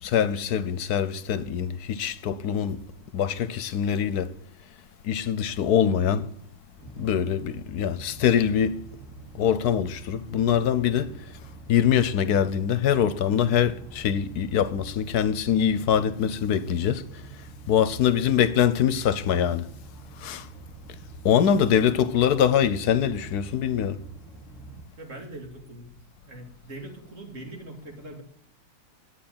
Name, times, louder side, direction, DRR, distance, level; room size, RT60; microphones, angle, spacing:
voice 1, 0.0-2.9 3.1-4.3 5.0-6.3 7.0-8.8 9.4-11.1 11.7-17.2 17.7-19.7 20.2-20.5 21.2-24.0, left 9 dB, 80° left, 1.3 m, -23 dB
sound 1, 6.8-24.8, right 3 dB, ahead, 3.6 m, -45 dB
voice 2, 21.8-22.4 25.0-25.9 26.2-28.2, right 1 dB, 55° right, 2.6 m, -42 dB
10.0 x 8.4 x 8.7 m
omnidirectional pair, 1.6 m